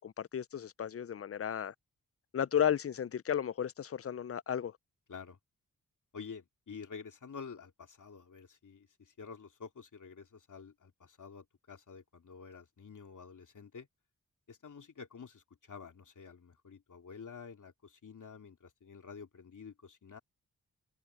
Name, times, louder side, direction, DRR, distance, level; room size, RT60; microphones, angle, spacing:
voice 1, 0.0-1.7 2.3-4.7, left 9 dB, 40° left, 0.5 m, -33 dB
voice 2, 6.1-13.9 14.5-20.2, left 5 dB, 60° left, 2.9 m, -49 dB
cardioid pair, 45°, 34 cm